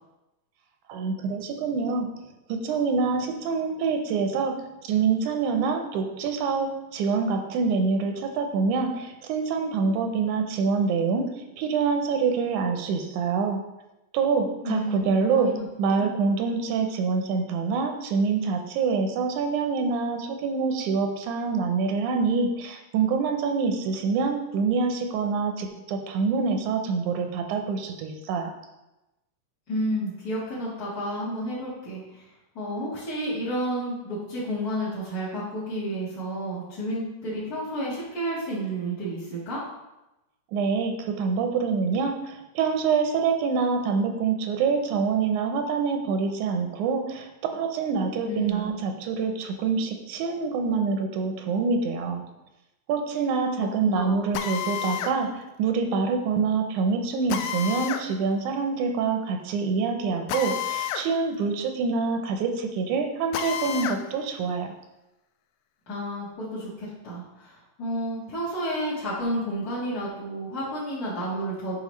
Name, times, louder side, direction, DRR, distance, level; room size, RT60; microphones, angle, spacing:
voice 1, 0.9-2.1 2.5-13.6 14.1-28.5 40.5-52.2 52.9-64.7, right 5 dB, 90° right, 5 dB, 2.2 m, -26 dB
voice 2, 14.6-15.1 15.4-15.6 16.0-16.1 29.7-32.3 32.5-39.6 48.2-48.7 53.8-54.2 65.9-71.8, equal, 40° left, -10 dB, 1.6 m, -31 dB
Drill, 54.3-55.2 57.3-58.1 60.3-61.1 61.4-61.5 63.3-64.0, left 9 dB, 80° left, 1.7 m, -30 dB
8.9 x 5.4 x 3.2 m, 0.98 s
omnidirectional pair, 3.5 m